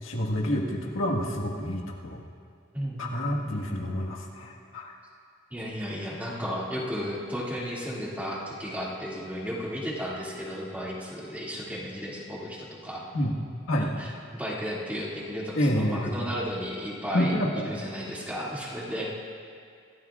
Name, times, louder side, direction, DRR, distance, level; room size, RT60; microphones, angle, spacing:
voice 1, 0.0-2.2 3.0-4.9 13.1-13.3 13.7-13.9 15.6-16.3 17.1-17.7, equal, 80° left, -2 dB, 1.7 m, -28 dB
voice 2, 2.7-3.9 5.5-13.0 13.8-19.1, equal, 10° right, -6 dB, 2.3 m, -34 dB
26.0 x 13.5 x 2.5 m, 2.2 s
head